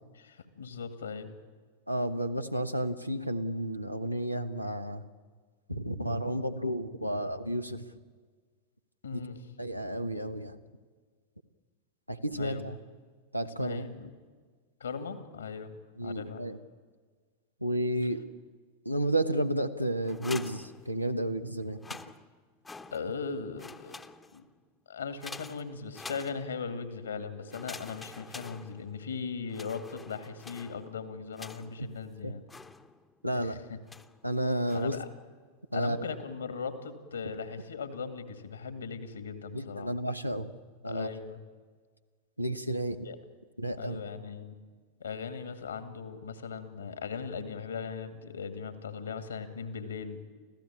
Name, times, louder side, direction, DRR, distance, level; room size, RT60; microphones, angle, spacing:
voice 1, 0.2-1.3 9.0-9.4 12.3-12.6 13.6-14.1 14.8-15.7 16.0-16.4 22.9-24.0 24.3-24.4 24.9-32.4 33.4-33.8 34.7-35.1 35.7-39.9 40.8-41.4 43.0-43.2 43.8-44.5 45.0-50.2, left 5 dB, 70° left, 10 dB, 2.2 m, -38 dB
voice 2, 1.9-5.0 5.7-7.8 9.1-9.2 9.6-10.6 12.1-12.8 13.3-13.8 16.0-16.6 17.6-18.2 18.8-21.8 31.8-31.9 32.2-32.3 33.2-33.6 34.2-35.0 35.7-36.0 39.5-40.5 40.8-41.1 42.4-43.1 43.6-44.0, right 1 dB, 90° right, 8 dB, 1.2 m, -31 dB
sound 1, 20.0-21.3 21.7-23.3 23.6-24.5 25.2-26.8 27.5-29.1 29.5-31.9 32.5-33.2 33.9-34.2 34.7-35.2, left 3 dB, 10° left, 1.0 m, -47 dB
25.0 x 15.5 x 9.9 m, 1.5 s
figure-of-eight pair, 90°, 0 cm